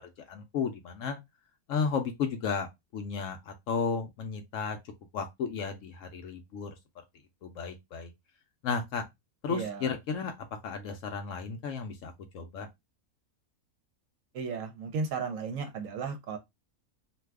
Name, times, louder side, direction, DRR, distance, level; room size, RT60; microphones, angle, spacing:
voice 1, 0.3-1.2 1.7-4.8 5.1-6.7 7.4-8.1 8.6-9.0 9.4-10.3 10.6-12.7, left 5 dB, 70° left, 0.9 m, -33 dB
voice 2, 9.5-10.0 14.3-16.4, right 5 dB, 65° right, 1.0 m, -34 dB
2.6 x 2.3 x 3.3 m
omnidirectional pair, 1.6 m